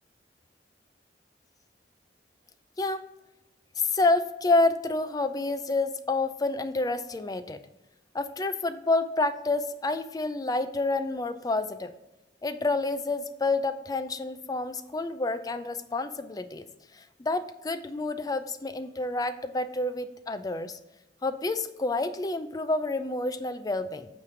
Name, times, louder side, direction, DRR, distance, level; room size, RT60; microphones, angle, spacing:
voice 1, 2.8-3.1 3.8-7.6 8.1-11.9 12.4-16.7 16.9-20.8 21.2-24.1, left 2 dB, 20° left, 11 dB, 0.4 m, -28 dB
8.8 x 3.1 x 4.9 m, 1.0 s
head